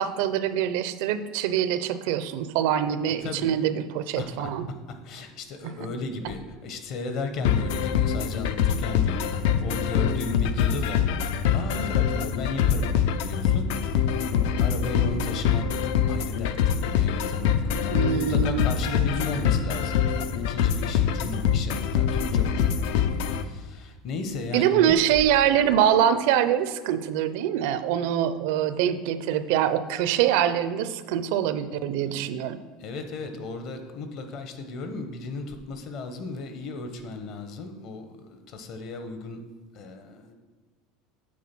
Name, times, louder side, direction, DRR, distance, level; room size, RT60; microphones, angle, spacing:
voice 1, 0.0-4.7 5.6-5.7 17.9-19.1 24.5-32.6, right 10 dB, 70° right, 12 dB, 0.5 m, -24 dB
voice 2, 4.2-4.5 5.0-11.1 11.5-12.9 13.3-19.9 20.5-22.9 23.2-25.0 32.8-39.4 39.7-40.3, left 3 dB, 50° left, 7 dB, 1.0 m, -34 dB
sound 1, 7.4-23.4, left 8 dB, 70° left, 0.5 m, -24 dB
8.5 x 3.8 x 6.0 m, 1.4 s
supercardioid pair, 140°, 0 cm